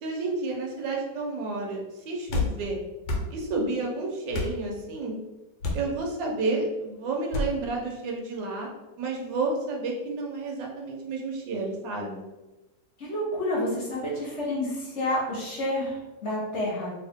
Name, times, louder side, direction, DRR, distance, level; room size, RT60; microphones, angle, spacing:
voice 1, 0.0-2.8 3.3-5.2 5.7-8.7 9.0-12.3, right 3 dB, 85° right, 0 dB, 1.4 m, -31 dB
sound 1, 2.3-2.5 3.0-3.3 4.3-4.6 5.6-5.9 7.3-7.5, left 2 dB, 90° left, 1.4 m, -27 dB
voice 2, 13.0-16.9, left 1 dB, 50° left, -5 dB, 1.0 m, -29 dB
3.1 x 2.8 x 3.4 m, 1.0 s
omnidirectional pair, 1.9 m